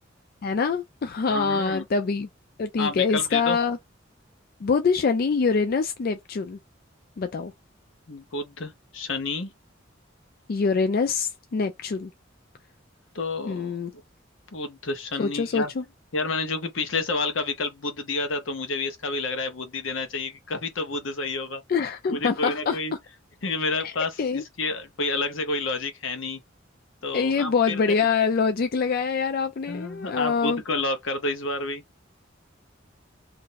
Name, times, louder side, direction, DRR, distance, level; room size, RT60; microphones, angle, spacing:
voice 1, 0.4-2.3 2.6-3.8 4.6-6.6 7.2-7.5 10.5-12.1 13.5-13.9 15.2-15.8 21.7-22.8 23.8-23.9 24.2-24.4 27.1-30.6, left 5 dB, 50° left, 0.4 m, -25 dB
voice 2, 1.3-1.8 2.8-3.6 8.1-9.5 13.1-13.8 14.5-15.7 16.1-21.6 22.1-22.9 23.4-26.4 27.0-27.9 29.7-31.8, left 3 dB, 80° left, 0.8 m, -29 dB
2.6 x 2.0 x 3.9 m
head